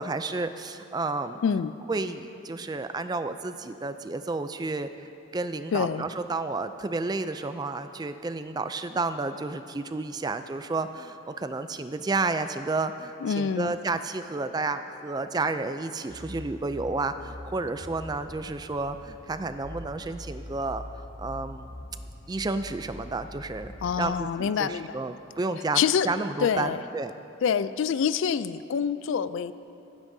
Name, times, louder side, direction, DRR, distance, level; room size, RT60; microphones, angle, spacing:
voice 1, 0.0-1.4 1.9-21.7 22.3-23.7 24.0-27.1, right 3 dB, 20° right, 10 dB, 0.3 m, -31 dB
voice 2, 5.7-6.1 13.2-13.7 23.8-24.9 25.8-26.1 26.4-26.8 27.4-29.5, left 7 dB, 65° left, 15 dB, 0.3 m, -26 dB
sound 1, 16.1-24.1, left 1 dB, 20° left, 1.6 m, -43 dB
25.5 x 9.5 x 2.7 m, 2.9 s
head